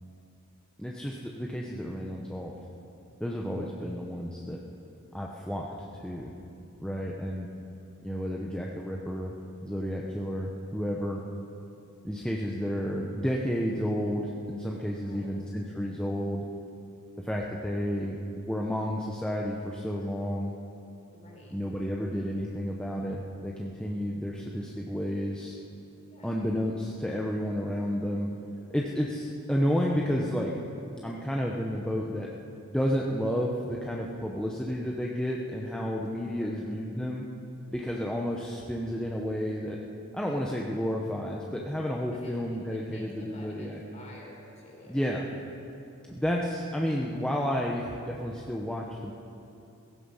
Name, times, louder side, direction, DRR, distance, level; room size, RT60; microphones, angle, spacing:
voice 1, 0.8-2.5 3.2-4.6 5.1-5.7 5.9-6.3 6.8-7.5 8.0-9.3 9.6-11.2 12.0-16.4 17.2-20.5 21.5-25.6 26.2-28.3 28.7-30.5 31.0-32.3 32.7-37.3 37.7-39.8 40.1-43.8 44.9-45.2 46.1-49.1, equal, 5° left, -2 dB, 0.8 m, -31 dB
voice 2, 14.9-15.4 21.1-21.8 26.1-26.3 36.3-36.6 42.2-42.4 42.7-45.1, left 1 dB, 35° left, -2 dB, 3.9 m, -49 dB
16.5 x 15.0 x 5.6 m, 2.7 s
head